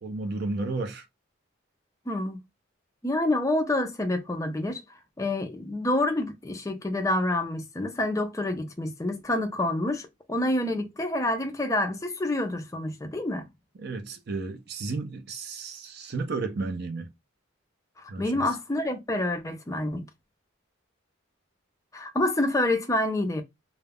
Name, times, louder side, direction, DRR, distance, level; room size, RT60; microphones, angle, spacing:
voice 1, 0.0-1.1 13.8-17.1 18.1-18.4, right 3 dB, 50° right, 0.4 m, -33 dB
voice 2, 2.1-2.4 3.0-4.8 5.2-13.5 18.0-20.1 21.9-23.4, left 1 dB, 15° left, 0.4 m, -27 dB
2.3 x 2.0 x 3.3 m
head